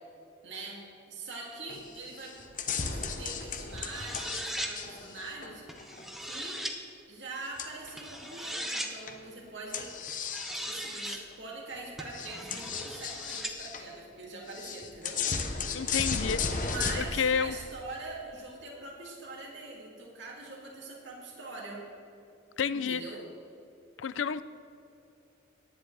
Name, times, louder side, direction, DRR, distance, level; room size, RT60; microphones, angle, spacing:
voice 1, 0.4-0.8 1.1-2.4 2.7-5.6 6.2-6.6 7.1-9.9 10.5-15.2 16.5-21.8 22.7-23.2, right 2 dB, 70° right, -2 dB, 2.5 m, -43 dB
sound 1, 1.7-1.9 2.2-4.4 4.8-6.0 7.6-8.1 8.8-9.2 9.7-10.6 11.1-11.2 11.7-11.8 12.1-13.8 14.5-17.0, left 5 dB, 45° left, 0.9 m, -35 dB
sound 2, 3.8-4.7 5.7-6.7 8.0-8.9 10.1-11.2 12.0-13.5, equal, ahead, 0.8 m, -38 dB
voice 2, 15.7-16.6 17.0-17.6 22.6-23.0 24.0-24.4, left 6 dB, 85° left, 15 dB, 0.4 m, -30 dB
18.0 x 10.0 x 3.4 m, 2.8 s
head